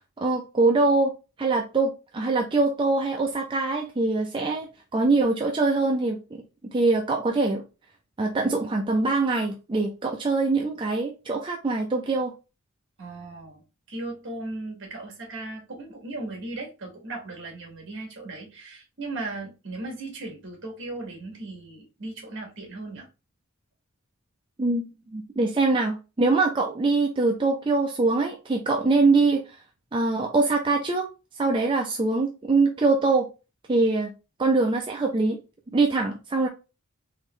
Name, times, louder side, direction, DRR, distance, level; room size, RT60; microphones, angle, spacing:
voice 1, 0.2-1.1 1.4-4.7 4.9-6.2 6.7-7.6 8.2-12.3 24.6-24.8 25.1-29.4 29.9-31.1 31.4-33.3 33.7-34.1 34.4-35.4 35.7-36.5, right 3 dB, 25° right, 0.4 m, -23 dB
voice 2, 13.0-13.6 13.9-23.1, right 2 dB, 60° right, 1.6 m, -37 dB
3.8 x 3.0 x 3.2 m
head